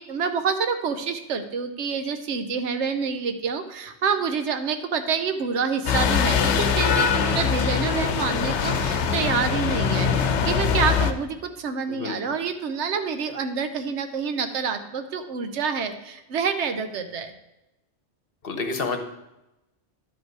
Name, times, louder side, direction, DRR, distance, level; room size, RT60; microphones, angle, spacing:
voice 1, 0.0-17.3, right 6 dB, 80° right, 8 dB, 1.1 m, -27 dB
sound 1, 5.9-11.1, left 6 dB, 80° left, 1.0 m, -22 dB
voice 2, 18.4-19.0, left 4 dB, 55° left, 6 dB, 1.1 m, -28 dB
11.0 x 5.3 x 4.6 m, 0.93 s
omnidirectional pair, 1.2 m